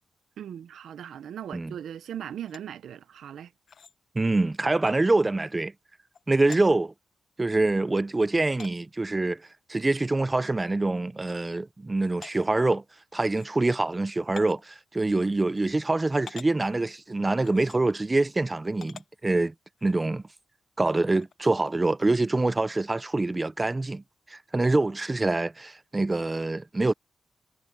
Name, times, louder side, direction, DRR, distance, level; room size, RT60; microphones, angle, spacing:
voice 1, 0.4-3.5, right 10 dB, 85° right, 0.6 m, -39 dB
sound 1, 2.5-2.6 3.7-3.9 4.9-5.0 6.1-6.2 6.5-6.7 7.5-7.6 8.6-8.8 10.0-10.1 10.5-10.6 11.3-11.4 12.2-12.4 13.3-13.5 14.4-14.6 15.6-15.7 16.3-16.5 17.4-17.8 18.8-19.1 19.8-19.9 21.1-21.3, left 6 dB, 55° left, 0.9 m, -45 dB
voice 2, 4.2-5.7 6.3-6.9 7.4-9.4 9.7-12.8 13.1-19.5 19.8-20.2 20.8-24.0 24.3-26.9, right 2 dB, 20° right, 0.6 m, -25 dB
wide cardioid pair, 130°, 0 cm